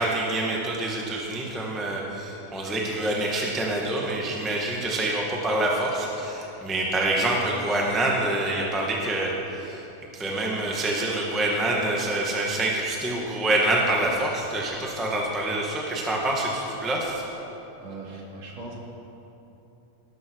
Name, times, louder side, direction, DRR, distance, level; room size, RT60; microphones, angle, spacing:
voice 1, 0.0-9.8 10.1-17.2, right 2 dB, ahead, -2 dB, 1.0 m, -26 dB
voice 2, 17.8-18.7, right 3 dB, 60° right, -3 dB, 3.4 m, -39 dB
18.5 x 12.5 x 4.8 m, 3.0 s
omnidirectional pair, 3.6 m